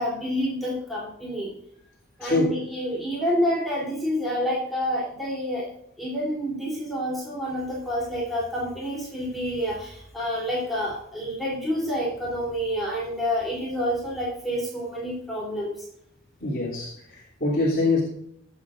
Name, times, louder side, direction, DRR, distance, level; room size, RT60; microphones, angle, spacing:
voice 1, 0.0-1.5 2.2-5.7 6.0-15.8, equal, ahead, -6 dB, 3.3 m, -28 dB
voice 2, 2.2-2.5 16.4-18.0, left 2 dB, 45° left, -6 dB, 3.1 m, -24 dB
21.0 x 8.1 x 2.5 m, 0.73 s
head